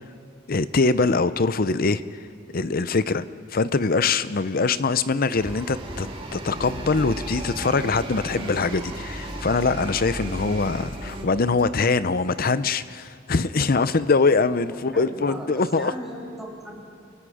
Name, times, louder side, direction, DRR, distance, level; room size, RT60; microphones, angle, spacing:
voice 1, 0.5-2.0 2.5-3.2 3.5-15.9, left 4 dB, 50° left, 14 dB, 0.6 m, -23 dB
sound 1, 5.4-11.2, right 1 dB, 25° right, 2.5 m, -35 dB
sound 2, 6.4-12.0, left 1 dB, 70° left, 1.2 m, -44 dB
voice 2, 14.6-16.8, equal, ahead, -4 dB, 3.6 m, -38 dB
27.0 x 25.0 x 5.0 m, 2.3 s
head